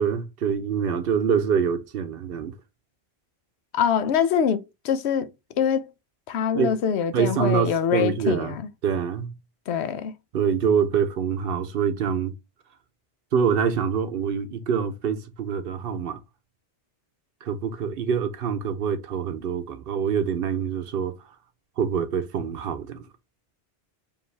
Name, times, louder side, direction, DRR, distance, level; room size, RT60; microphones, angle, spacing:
voice 1, 0.0-2.6 6.5-6.7 7.1-8.5 8.8-9.4 10.3-12.3 13.3-16.2 17.4-21.2 21.8-23.1, right 7 dB, 65° right, 0.8 m, -25 dB
voice 2, 3.7-5.8 6.3-8.7 9.7-10.1, left 8 dB, 90° left, 0.9 m, -24 dB
4.8 x 2.6 x 3.2 m
omnidirectional pair, 1.1 m